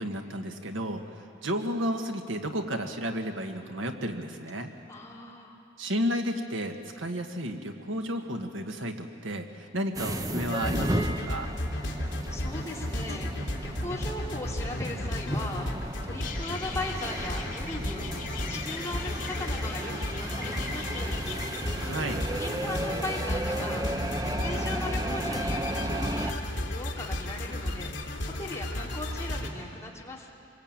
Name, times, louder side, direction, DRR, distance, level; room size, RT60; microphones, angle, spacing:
voice 1, 0.0-4.7 5.8-11.5 21.7-22.3, equal, 80° right, 4 dB, 1.8 m, -32 dB
voice 2, 4.9-5.6 12.0-18.1 18.5-21.2 22.3-23.9 24.2-25.7 25.9-27.9 28.4-30.3, left 1 dB, 15° left, -2 dB, 2.8 m, -38 dB
sound 1, 9.9-26.3, right 1 dB, 20° right, 0.9 m, -35 dB
sound 2, 10.4-29.5, left 1 dB, 65° left, 2.8 m, -34 dB
sound 3, 16.2-21.5, left 5 dB, 40° left, 2.5 m, -41 dB
26.0 x 22.0 x 9.0 m, 2.7 s
head